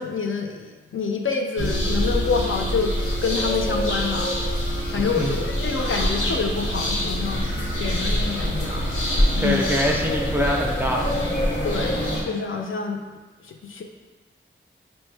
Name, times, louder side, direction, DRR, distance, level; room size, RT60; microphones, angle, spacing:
voice 1, 0.0-2.9 3.2-4.5 4.9-9.6 11.6-12.0 12.3-13.0 13.5-13.8, left 5 dB, 70° left, 2 dB, 0.4 m, -27 dB
sound 1, 1.6-12.2, equal, 85° left, 0.9 m, -25 dB
voice 2, 5.0-5.4 9.4-11.2, equal, 10° right, -1 dB, 0.5 m, -24 dB
5.3 x 2.1 x 3.2 m, 1.3 s
wide cardioid pair, 85°, 21 cm